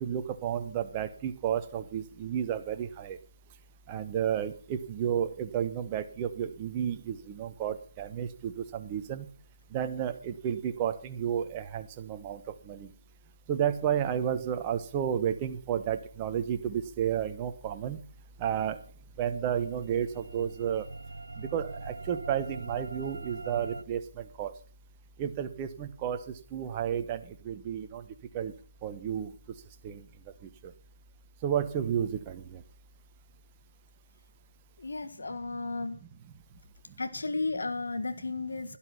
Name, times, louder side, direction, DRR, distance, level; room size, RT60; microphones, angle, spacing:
voice 1, 0.0-3.2 3.9-9.3 9.7-12.4 12.7-12.9 13.5-18.0 18.4-18.8 19.2-20.8 21.4-24.5 25.2-26.2 26.5-28.0 28.3-28.5 28.8-29.3 29.8-30.0 31.4-32.6, right 9 dB, 20° right, 8 dB, 1.1 m, -32 dB
sound 1, 19.5-23.8, right 2 dB, 75° right, 0.7 m, -42 dB
voice 2, 34.8-36.0 37.0-38.8, left 3 dB, 65° left, 9 dB, 1.6 m, -34 dB
12.0 x 11.5 x 5.8 m, 0.42 s
figure-of-eight pair, 155°, 0 cm